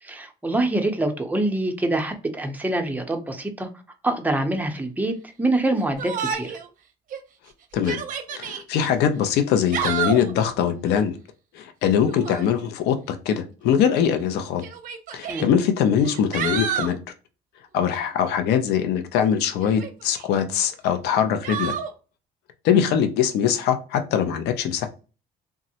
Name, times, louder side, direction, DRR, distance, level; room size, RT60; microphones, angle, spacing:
voice 1, 0.0-3.7 4.0-6.6 15.3-15.5, right 2 dB, 10° right, 0.5 m, -25 dB
Yell, 6.0-6.7 7.1-7.2 7.7-8.6 9.5-10.3 12.1-12.5 13.7-13.8 14.6-15.4 16.0-17.0 19.6-20.3 21.4-21.9, right 8 dB, 55° right, 0.6 m, -29 dB
voice 2, 8.3-11.2 11.5-14.6 15.1-17.0 17.7-21.7 22.6-24.9, left 8 dB, 80° left, 0.4 m, -22 dB
3.5 x 2.0 x 2.7 m
cardioid pair, 110°, 17 cm